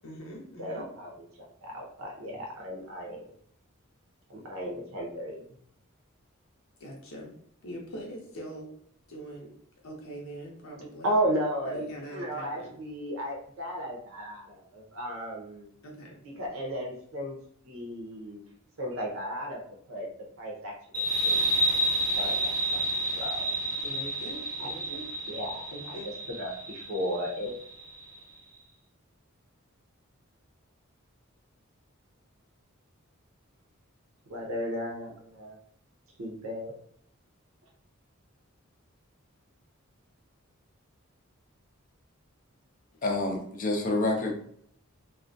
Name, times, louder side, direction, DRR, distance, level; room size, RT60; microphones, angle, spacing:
voice 1, 0.0-0.9 6.8-7.4 7.6-8.7 9.1-9.5 9.8-11.2 11.6-12.8 15.8-16.2 23.8-25.1 25.7-26.1, right 1 dB, 75° left, -1 dB, 0.6 m, -42 dB
voice 2, 0.6-3.3 4.3-5.4 11.0-11.8 12.1-15.7 16.4-17.4 17.6-18.4 18.8-19.6 19.9-20.1 20.4-21.4 22.2-22.8 23.2-23.4 24.6-24.7 25.3-26.0 26.4-27.6 34.3-35.6 36.2-36.7, equal, 75° right, -1 dB, 0.6 m, -34 dB
sound 1, 20.9-28.1, right 1 dB, 15° right, 0.7 m, -30 dB
voice 3, 43.0-44.3, left 2 dB, 40° left, 2 dB, 0.4 m, -27 dB
2.3 x 2.1 x 2.5 m, 0.65 s
head